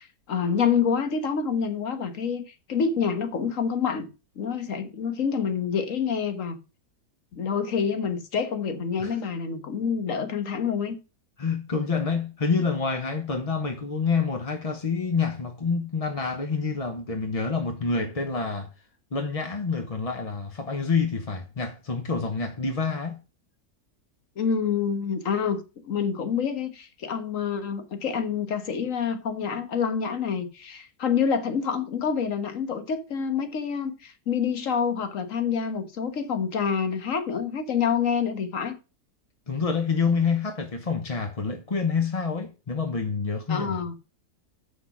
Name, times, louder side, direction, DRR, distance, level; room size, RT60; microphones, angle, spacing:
voice 1, 0.0-4.1 4.4-6.6 7.3-11.0 24.4-38.8 43.5-44.0, left 6 dB, 55° left, 1.6 m, -27 dB
voice 2, 11.4-18.7 19.1-23.2 39.5-43.8, left 5 dB, 30° left, 0.7 m, -27 dB
7.8 x 6.4 x 6.0 m
omnidirectional pair, 1.7 m